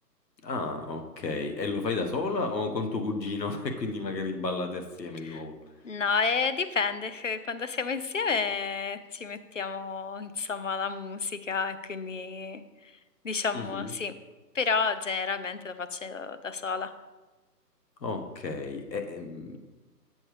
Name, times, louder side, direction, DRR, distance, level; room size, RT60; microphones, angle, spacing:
voice 1, 0.4-5.5 13.5-13.9 18.0-19.6, left 3 dB, 80° left, 4 dB, 1.4 m, -32 dB
voice 2, 5.8-12.6 13.2-14.1 14.5-16.9, left 5 dB, 50° left, 11 dB, 0.5 m, -31 dB
7.9 x 7.1 x 3.3 m, 1.2 s
hypercardioid pair, 170°, 50 cm